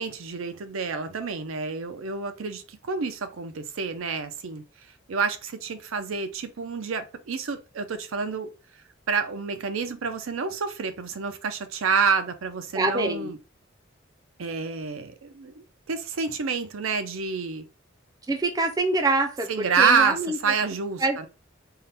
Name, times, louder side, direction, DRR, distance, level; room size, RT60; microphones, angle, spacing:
voice 1, 0.0-4.6 5.1-8.5 9.1-13.4 14.4-17.7 19.5-21.3, right 5 dB, 80° right, 0.5 m, -28 dB
voice 2, 12.7-13.3 18.3-19.5 19.8-20.4 21.0-21.3, right 2 dB, 20° right, 0.4 m, -25 dB
3.7 x 2.2 x 4.0 m
head